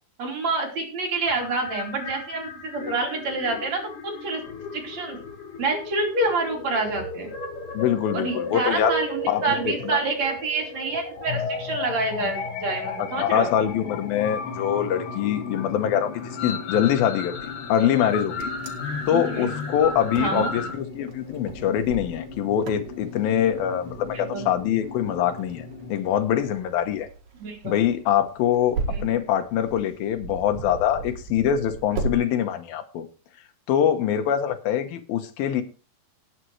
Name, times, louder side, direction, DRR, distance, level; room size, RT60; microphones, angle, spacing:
voice 1, 0.2-4.4 4.7-5.2 5.6-7.3 8.1-13.5 19.1-19.5 20.1-20.5 24.1-24.5 27.4-27.8 28.9-29.0, right 3 dB, 50° right, 1 dB, 4.1 m, -27 dB
sound 1, 1.2-20.7, left 3 dB, 65° left, 3.2 m, -34 dB
voice 2, 7.7-8.9 9.3-10.0 13.2-18.5 19.1-27.1 27.6-33.1 33.7-35.6, left 10 dB, 85° left, 9 dB, 2.9 m, -24 dB
sound 2, 13.2-25.9, left 4 dB, 40° left, 4.8 m, -39 dB
Wind, 18.0-32.2, right 4 dB, 70° right, 3.5 m, -37 dB
19.0 x 7.6 x 3.2 m, 0.35 s
omnidirectional pair, 4.1 m